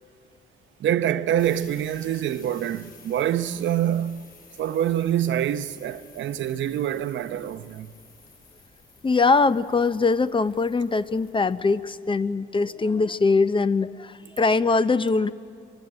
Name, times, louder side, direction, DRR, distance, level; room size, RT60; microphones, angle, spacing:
voice 1, 0.8-4.3 4.6-7.9, right 10 dB, 70° right, 0.8 m, -26 dB
sound 1, 1.4-11.9, left 4 dB, 45° left, 6.4 m, -52 dB
voice 2, 9.0-15.3, left 4 dB, 25° left, 0.7 m, -22 dB
22.0 x 21.5 x 8.8 m
cardioid pair, 90°, 20 cm